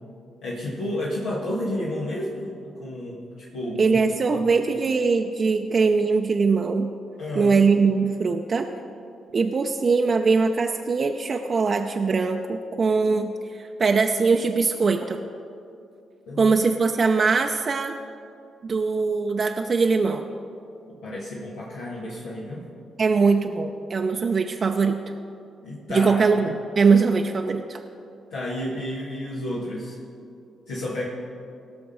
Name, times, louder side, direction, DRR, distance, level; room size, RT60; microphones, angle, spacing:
voice 1, 0.4-4.0 4.3-4.4 7.2-7.6 16.3-16.5 20.9-22.7 25.6-26.2 28.3-30.0 30.7-31.1, left 1 dB, 80° left, -6 dB, 1.6 m, -31 dB
voice 2, 3.8-6.9 7.3-8.7 9.3-15.2 16.4-18.0 18.6-20.3 23.0-25.0 25.9-27.8, right 4 dB, 45° right, 4 dB, 0.6 m, -21 dB
18.0 x 6.1 x 5.3 m, 2.5 s
hypercardioid pair, 45°, 0 cm